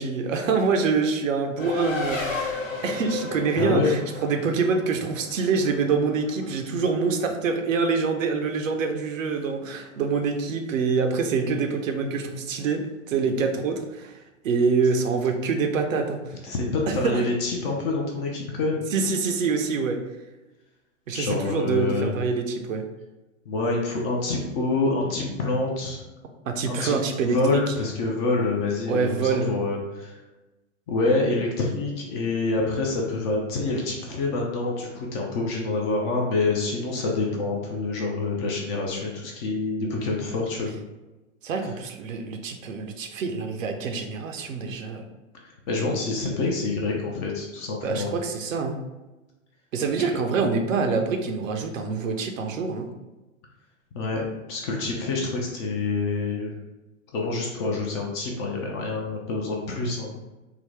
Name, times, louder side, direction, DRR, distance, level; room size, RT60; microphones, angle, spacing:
voice 1, 0.0-14.1 14.4-16.2 16.9-17.2 18.9-20.0 21.1-22.8 26.5-27.7 28.9-29.5 41.4-45.0 47.8-48.8 49.7-52.9, right 4 dB, 80° right, 5 dB, 0.6 m, -25 dB
Race car auto racing, 1.6-6.5, left 4 dB, 90° left, 0.8 m, -33 dB
voice 2, 3.5-3.9 16.4-18.9 21.1-22.1 23.5-26.0 26.8-27.0 27.2-30.2 30.9-40.7 45.7-48.1 50.0-50.1 53.9-54.2 54.5-56.5 57.1-60.1, left 3 dB, 25° left, -1 dB, 0.3 m, -26 dB
3.7 x 2.0 x 3.1 m, 1.1 s
hypercardioid pair, 115°, 39 cm